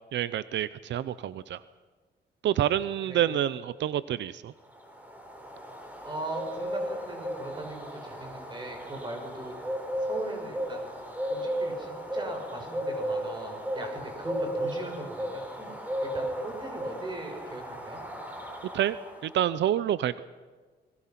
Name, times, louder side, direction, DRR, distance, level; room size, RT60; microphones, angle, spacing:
voice 1, 0.1-1.6 2.4-4.5 18.7-19.0 19.2-20.2, right 11 dB, 90° right, 15 dB, 0.6 m, -28 dB
sound 1, 4.7-19.3, equal, 10° right, 4.0 m, -35 dB
voice 2, 6.0-10.9 11.3-15.7 16.0-18.0, right 2 dB, 25° right, 3 dB, 6.0 m, -39 dB
28.0 x 21.5 x 5.9 m, 1.4 s
wide cardioid pair, 145°, 18 cm